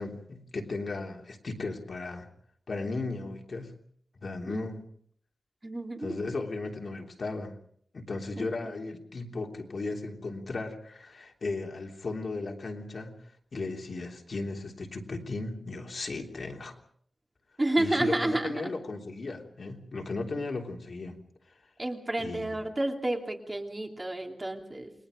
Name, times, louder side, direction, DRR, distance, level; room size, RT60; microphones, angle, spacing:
voice 1, 0.0-2.3 2.7-3.7 4.2-4.8 6.0-7.5 7.9-13.1 13.5-16.8 17.8-21.2 22.2-22.6, left 3 dB, 55° left, 2 dB, 3.2 m, -36 dB
voice 2, 5.6-6.2 8.4-8.7 17.6-18.7 21.8-24.9, right 1 dB, 25° right, 2 dB, 3.0 m, -30 dB
29.5 x 22.0 x 5.2 m, 0.63 s
wide cardioid pair, 135°, 0 cm